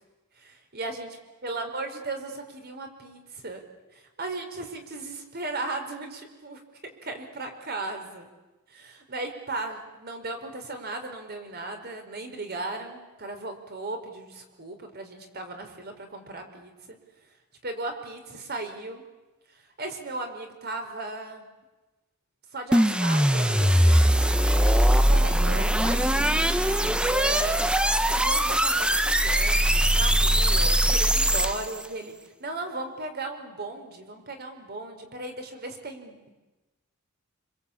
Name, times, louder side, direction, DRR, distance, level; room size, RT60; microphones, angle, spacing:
voice 1, 0.4-1.1 1.4-3.6 3.9-8.3 8.7-17.0 17.6-19.0 19.5-21.4 22.5-26.4 27.1-27.7 28.1-32.1 32.4-36.3, right 2 dB, 50° right, 5 dB, 4.7 m, -36 dB
sound 1, 22.7-31.8, right 1 dB, 5° right, 1.0 m, -21 dB
26.5 x 26.0 x 8.7 m, 1.1 s
head